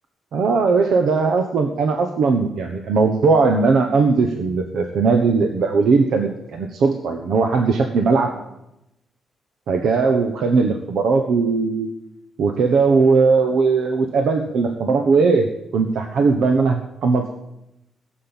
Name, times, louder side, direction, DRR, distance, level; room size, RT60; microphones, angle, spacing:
voice 1, 0.3-8.3 9.7-11.9 12.4-17.3, right 4 dB, 70° right, 5 dB, 1.2 m, -18 dB
16.0 x 7.7 x 8.9 m, 0.86 s
wide cardioid pair, 175°, 0 cm